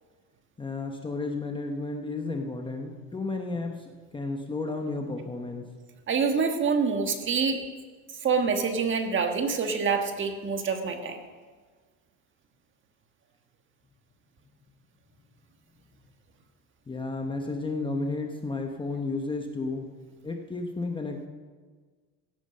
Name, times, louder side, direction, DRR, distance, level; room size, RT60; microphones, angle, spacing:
voice 1, 0.6-5.7 16.9-19.9 20.2-21.3, left 3 dB, 10° left, 3 dB, 0.9 m, -32 dB
voice 2, 6.1-7.6 8.2-11.2, right 5 dB, 30° right, 5 dB, 1.5 m, -26 dB
16.0 x 9.3 x 6.5 m, 1.5 s
cardioid pair, 140°, 40 cm